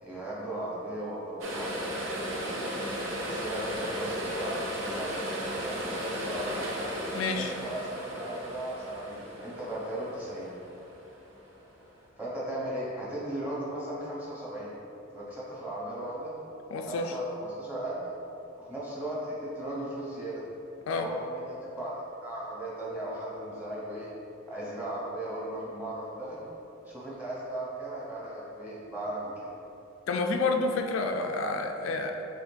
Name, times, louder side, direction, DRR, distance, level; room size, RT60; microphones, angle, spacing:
voice 1, 0.0-1.7 2.2-2.7 3.2-5.2 5.6-6.7 7.3-10.5 12.2-14.8 15.1-16.3 16.8-18.0 18.7-20.4 21.0-24.1 24.5-26.4 26.9-29.5, right 1 dB, 10° right, -8 dB, 1.0 m, -37 dB
sound 1, 1.4-11.7 12.0-12.1, equal, 80° right, 0.6 m, -35 dB
voice 2, 7.1-7.5 16.7-17.1 20.9-21.1 30.1-32.2, left 3 dB, 90° left, 4 dB, 0.3 m, -29 dB
5.1 x 3.5 x 2.5 m, 2.9 s
head